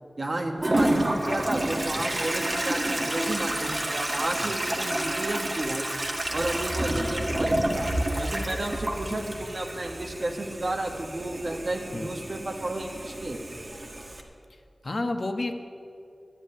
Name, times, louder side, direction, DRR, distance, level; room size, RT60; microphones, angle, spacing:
voice 1, 0.2-5.9 6.3-13.4, right 1 dB, 65° right, 1 dB, 1.5 m, -32 dB
Toilet flush, 0.6-14.2, right 1 dB, 45° right, 1.7 m, -29 dB
voice 2, 1.3-1.6 2.0-2.1 6.9-7.4 9.1-9.4 11.9-12.1 14.8-15.6, left 2 dB, 65° left, 6 dB, 1.1 m, -33 dB
11.5 x 8.2 x 9.9 m, 2.5 s
wide cardioid pair, 45°, 0 cm